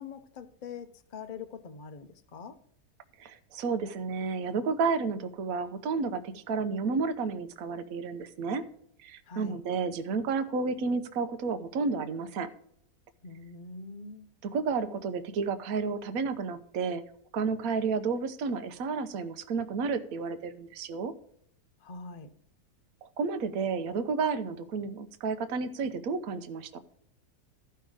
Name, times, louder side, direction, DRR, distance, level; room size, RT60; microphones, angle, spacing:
voice 1, 0.0-2.6 9.3-9.6 13.2-14.3 21.8-22.3, left 5 dB, 40° left, 8 dB, 0.6 m, -43 dB
voice 2, 3.2-8.6 9.0-12.5 14.4-17.0 17.3-21.1 23.0-26.8, right 4 dB, 65° right, 10 dB, 1.2 m, -31 dB
14.0 x 5.7 x 4.8 m, 0.67 s
omnidirectional pair, 1.7 m